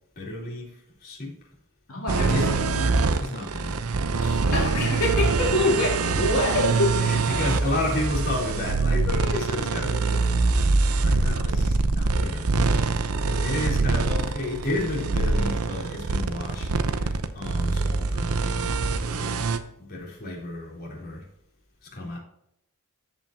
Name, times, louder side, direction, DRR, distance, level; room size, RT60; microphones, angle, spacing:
voice 1, 0.2-1.3 2.3-2.5 3.2-3.8 4.2-4.9 6.1-6.4 7.1-10.3 10.9-12.5 13.2-18.8 19.0-19.4 19.8-21.3 21.9-22.2, left 2 dB, 45° left, 3.7 m, -32 dB
voice 2, 1.9-3.0 4.5-7.0, left 1 dB, 80° left, 2.4 m, -25 dB
sound 1, 2.1-19.6, right 3 dB, 90° right, 0.8 m, -24 dB
14.0 x 5.7 x 2.9 m
head